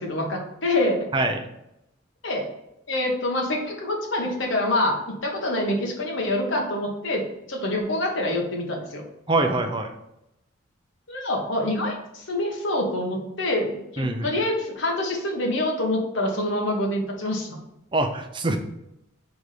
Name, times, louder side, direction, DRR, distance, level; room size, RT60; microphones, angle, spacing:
voice 1, 0.0-1.1 2.2-2.5 2.9-9.0 11.1-17.6, left 1 dB, 65° left, 0 dB, 1.3 m, -26 dB
voice 2, 9.3-9.9 14.0-14.3 17.9-18.6, right 2 dB, 25° right, 5 dB, 0.6 m, -24 dB
4.7 x 4.2 x 5.1 m, 0.85 s
head